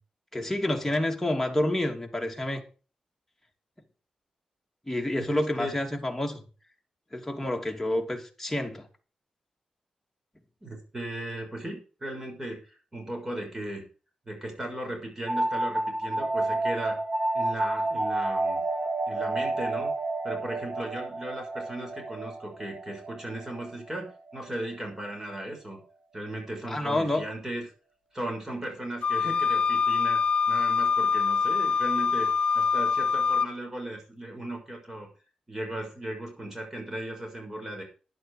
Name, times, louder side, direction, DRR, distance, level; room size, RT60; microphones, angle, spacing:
voice 1, 0.3-2.6 4.9-6.4 7.1-8.9 26.7-27.3, left 1 dB, 10° left, 3.0 m, -28 dB
voice 2, 5.1-5.8 10.6-13.8 14.3-17.0 17.3-18.6 19.1-19.9 20.2-25.8 26.1-27.7 28.1-30.2 30.5-35.1 35.5-37.8, right 1 dB, 20° right, 6.3 m, -37 dB
sound 1, 15.3-24.6, right 2 dB, 45° right, 1.6 m, -30 dB
Wind instrument woodwind instrument, 29.0-33.5, left 5 dB, 55° left, 0.7 m, -24 dB
11.5 x 11.0 x 5.0 m
wide cardioid pair, 110°, 2 cm